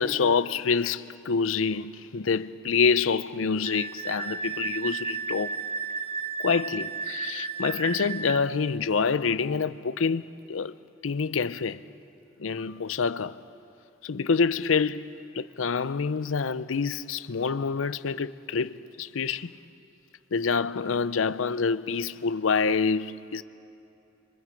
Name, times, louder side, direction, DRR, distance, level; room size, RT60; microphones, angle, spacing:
voice 1, 0.0-5.6 6.4-10.7 11.0-11.8 12.4-13.4 14.0-19.5 20.3-23.4, left 5 dB, 80° left, 0.6 m, -27 dB
Wind instrument woodwind instrument, 3.6-8.4, right 5 dB, 30° right, 0.5 m, -33 dB
30.0 x 25.5 x 5.2 m
head